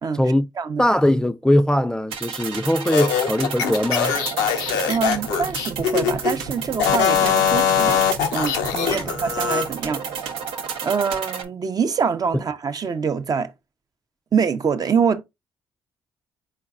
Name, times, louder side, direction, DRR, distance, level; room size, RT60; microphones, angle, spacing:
voice 1, 0.1-0.5 0.8-4.1 8.9-9.1, left 1 dB, 10° left, 0.3 m, -20 dB
sound 1, 2.1-11.4, right 6 dB, 85° right, 0.7 m, -31 dB
sound 2, 2.8-6.3 6.7-9.7, left 8 dB, 85° left, 0.6 m, -22 dB
voice 2, 4.9-8.0 8.3-10.0 10.8-13.5 14.3-15.2, right 6 dB, 45° right, 0.6 m, -24 dB
4.2 x 3.9 x 2.4 m
hypercardioid pair, 55°, 9 cm